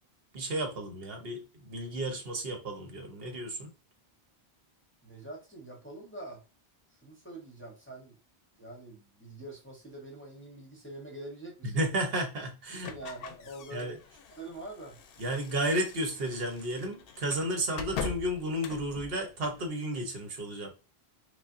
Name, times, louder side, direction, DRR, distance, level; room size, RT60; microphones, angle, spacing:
voice 1, 0.3-3.7 11.6-12.9 13.7-14.0 15.2-20.7, right 1 dB, 65° right, 3 dB, 1.1 m, -33 dB
voice 2, 5.0-6.4 7.0-8.2 8.6-11.8 12.7-14.0 14.3-15.0, right 2 dB, 15° left, -2 dB, 0.7 m, -45 dB
sound 1, 12.8-19.7, left 6 dB, 65° left, 0.7 m, -43 dB
5.3 x 2.1 x 2.5 m, 0.31 s
omnidirectional pair, 1.1 m